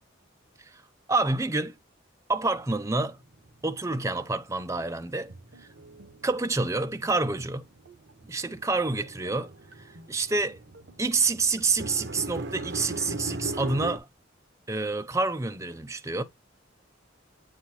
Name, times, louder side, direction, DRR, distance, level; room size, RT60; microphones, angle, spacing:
voice 1, 1.1-1.8 2.3-3.2 3.6-5.3 6.2-7.6 8.3-9.5 9.8-10.6 11.0-14.1 14.7-16.2, right 3 dB, 15° right, 0.6 m, -28 dB
sound 1, 2.6-4.2 4.5-14.0, right 2 dB, 65° right, 1.1 m, -40 dB
sound 2, 5.2-5.6 6.0-6.3 7.0-7.5 7.9-8.1 8.9-9.3 9.7-10.1 10.7-11.1 11.6-11.9, right 2 dB, 90° right, 1.0 m, -49 dB
8.1 x 4.1 x 3.0 m
head